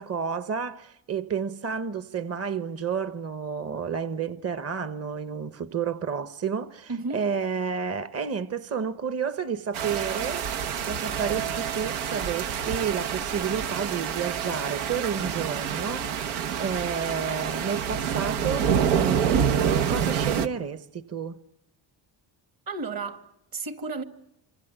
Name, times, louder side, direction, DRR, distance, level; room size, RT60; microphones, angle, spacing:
voice 1, 0.0-21.4, right 6 dB, 30° right, 1.1 m, -31 dB
voice 2, 6.9-7.3 22.7-24.0, right 3 dB, 45° right, 2.5 m, -33 dB
sound 1, 9.7-20.5, right 8 dB, 90° right, 1.2 m, -27 dB
27.5 x 25.0 x 8.1 m
cardioid pair, 85°, 49 cm